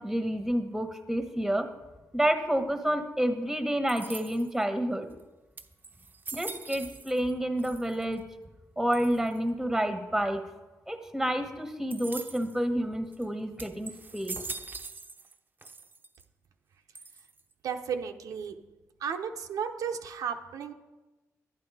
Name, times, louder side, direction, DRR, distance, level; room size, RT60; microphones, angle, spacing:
voice 1, 0.0-1.7 2.1-5.1 6.3-8.2 8.8-10.4 10.9-14.4, right 1 dB, 5° right, 7 dB, 1.3 m, -29 dB
sound 1, 3.9-4.6 5.2-5.3 5.6-7.3 7.6-8.2 8.9-9.4 11.9-12.6 13.1-13.2 13.6-15.3 15.6-16.2 16.9-17.5, right 3 dB, 30° right, 0.8 m, -42 dB
voice 2, 17.6-18.6 19.0-20.7, right 7 dB, 80° right, 4 dB, 0.9 m, -34 dB
10.5 x 9.6 x 4.9 m, 1.1 s
cardioid pair, 80°, 6 cm